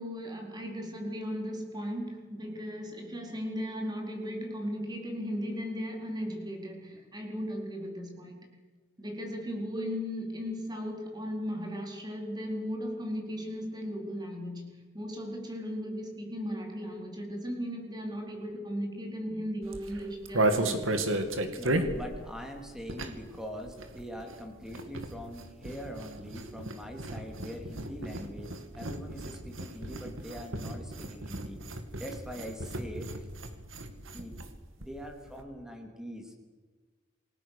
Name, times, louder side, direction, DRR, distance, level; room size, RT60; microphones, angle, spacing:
voice 1, 0.0-8.5 9.0-21.0, equal, 20° right, 2 dB, 4.3 m, -36 dB
sound 1, 19.6-23.4 23.6-34.5 34.8-34.9 35.1-35.4, right 1 dB, 75° right, 2.4 m, -34 dB
voice 2, 21.6-31.6 32.0-33.3 34.1-34.4 34.8-36.4, equal, 5° right, 3 dB, 3.6 m, -43 dB
28.5 x 20.0 x 6.7 m, 1.3 s
head